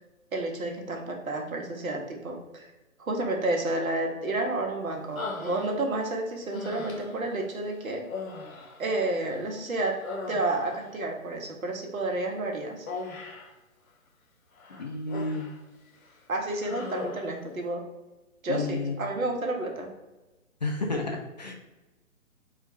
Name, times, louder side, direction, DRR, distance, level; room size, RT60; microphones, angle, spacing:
voice 1, 0.3-2.7 3.1-8.1 8.8-10.0 10.3-12.9 16.3-17.8 18.4-19.9, right 2 dB, 75° right, 2 dB, 1.2 m, -30 dB
Human voice, 5.2-6.1 6.5-7.3 8.0-9.5 9.8-10.9 12.9-13.6 14.6-15.6 15.9-16.2 16.6-17.4, left 3 dB, 80° left, 1.0 m, -39 dB
voice 2, 14.8-15.5 18.5-19.1 20.6-21.5, left 3 dB, 35° left, 1 dB, 0.4 m, -31 dB
3.7 x 2.5 x 4.6 m, 1.1 s
figure-of-eight pair, 140°, 41 cm